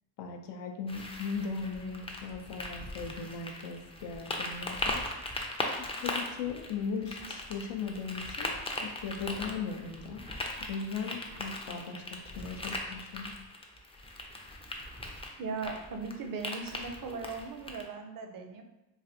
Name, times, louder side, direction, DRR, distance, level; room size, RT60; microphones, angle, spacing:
voice 1, 0.2-5.0 5.8-8.5 8.8-10.2 10.7-13.3, left 5 dB, 80° left, 4 dB, 0.5 m, -38 dB
sound 1, 0.9-17.8, left 1 dB, 15° left, 0.3 m, -39 dB
voice 2, 15.4-18.6, right 4 dB, 55° right, 5 dB, 0.5 m, -38 dB
3.2 x 2.4 x 2.6 m, 0.98 s
cardioid pair, 80°, 41 cm